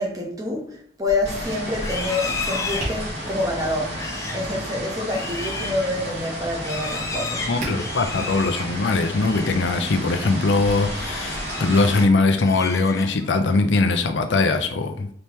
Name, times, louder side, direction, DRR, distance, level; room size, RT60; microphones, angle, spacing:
voice 1, 0.0-4.0 4.3-7.7, left 2 dB, 20° right, -1 dB, 1.0 m, -27 dB
Tap, 1.0-10.7, right 1 dB, 40° right, 1.6 m, -42 dB
sound 1, 1.2-12.0, equal, 80° right, 1.8 m, -32 dB
Livestock farm animals working animals, 1.7-9.7 10.0-10.3 10.7-12.0 12.3-13.4, left 4 dB, 15° left, 0.3 m, -34 dB
voice 2, 7.5-15.1, left 3 dB, 85° left, 7 dB, 0.5 m, -21 dB
4.2 x 2.9 x 3.4 m, 0.64 s
head